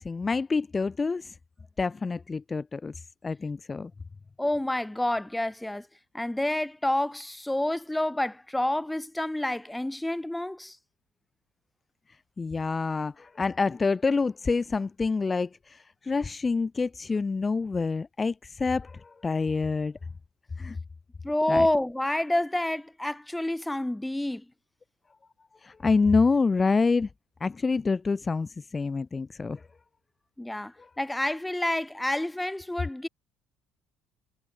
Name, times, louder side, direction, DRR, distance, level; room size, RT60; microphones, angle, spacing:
voice 1, 0.0-1.3 1.8-2.9 3.2-3.9 12.4-19.9 20.6-20.8 21.5-21.7 25.6-27.1 27.4-29.6 30.8-30.9, left 4 dB, 25° left, 0.8 m, -27 dB
voice 2, 4.4-5.9 6.1-10.8 21.2-24.4 30.4-33.1, left 1 dB, 5° left, 1.2 m, -28 dB
figure-of-eight pair, 50°, 0 cm